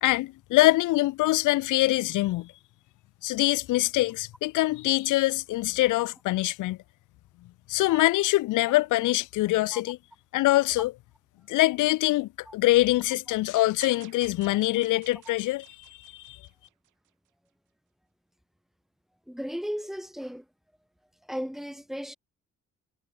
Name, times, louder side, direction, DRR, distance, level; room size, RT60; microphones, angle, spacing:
voice 1, 0.0-2.5 3.2-6.8 7.7-10.0 10.3-10.9 11.5-16.4, left 18 dB, 80° left, 0.6 m, -24 dB
sound 1, 13.8-17.1, right 13 dB, 80° right, 6.5 m, -52 dB
voice 2, 19.3-20.4 21.3-22.2, equal, ahead, 6.8 m, -35 dB
cardioid pair, 90°, 30 cm